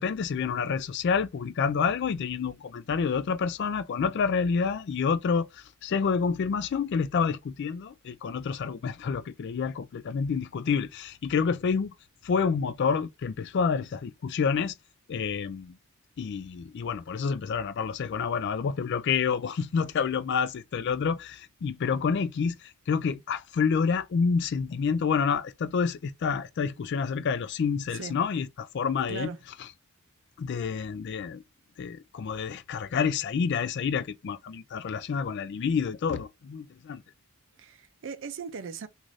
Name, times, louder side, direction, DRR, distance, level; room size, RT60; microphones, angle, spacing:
voice 1, 0.0-11.9 12.2-14.7 15.1-15.8 16.2-29.7 30.4-31.4 31.8-37.0, left 6 dB, 50° left, 0.3 m, -28 dB
voice 2, 29.1-29.4 37.6-38.9, right 5 dB, 60° right, 0.5 m, -38 dB
2.6 x 2.5 x 3.1 m
head